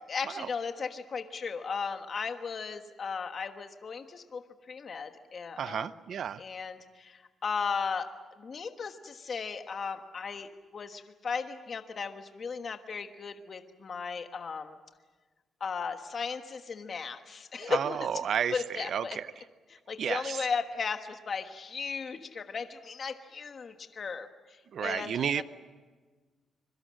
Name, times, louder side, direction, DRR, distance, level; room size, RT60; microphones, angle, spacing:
voice 1, 0.1-5.9 6.4-8.1 8.4-14.8 15.6-18.0 18.5-19.2 19.9-25.4, left 5 dB, 40° left, 7 dB, 1.4 m, -36 dB
voice 2, 5.6-6.4 17.6-19.4 20.0-20.5 24.7-25.4, right 8 dB, 60° right, 15 dB, 0.7 m, -32 dB
25.5 x 23.5 x 7.6 m, 1.4 s
cardioid pair, 150°, 0 cm